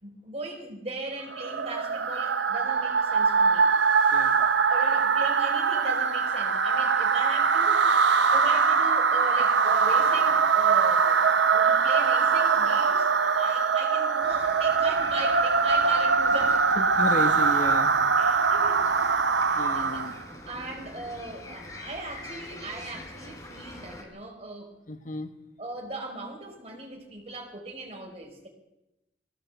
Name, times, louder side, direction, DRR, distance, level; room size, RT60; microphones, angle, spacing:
voice 1, 0.0-3.7 4.4-7.8 8.3-16.6 18.2-18.8 19.5-20.1 20.5-24.7 25.6-28.5, right 2 dB, 35° right, 2 dB, 4.8 m, -39 dB
sound 1, 1.3-20.2, right 5 dB, 80° right, 0.9 m, -22 dB
voice 2, 4.1-4.5 16.8-17.9 19.6-20.2 24.9-25.3, left 1 dB, 45° left, 7 dB, 1.4 m, -33 dB
sound 2, 14.2-24.0, left 1 dB, 20° left, 3.7 m, -45 dB
21.0 x 16.5 x 8.1 m, 0.92 s
head